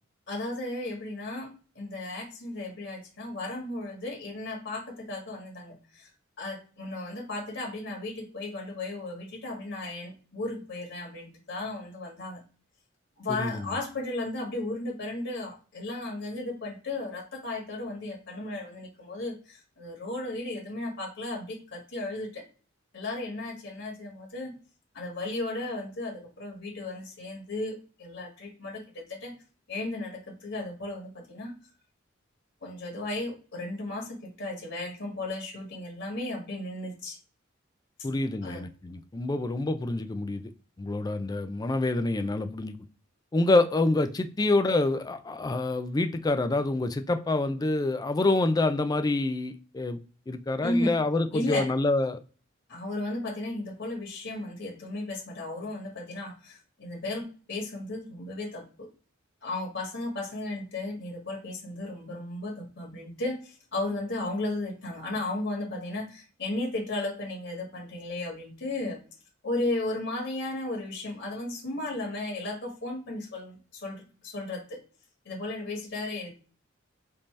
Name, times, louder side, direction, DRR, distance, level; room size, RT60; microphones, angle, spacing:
voice 1, 0.3-6.1 6.4-12.4 13.2-22.4 22.9-24.5 24.9-29.3 29.7-31.5 32.6-37.2 38.4-38.6 50.6-50.9 51.3-51.7 52.7-58.9 59.4-69.0 69.4-74.8 75.2-76.3, left 2 dB, 60° left, 1.6 m, -35 dB
voice 2, 13.3-13.7 38.0-40.5 40.8-42.8 43.3-50.0 50.3-52.2, left 2 dB, 20° left, 0.3 m, -27 dB
5.1 x 2.8 x 3.2 m
head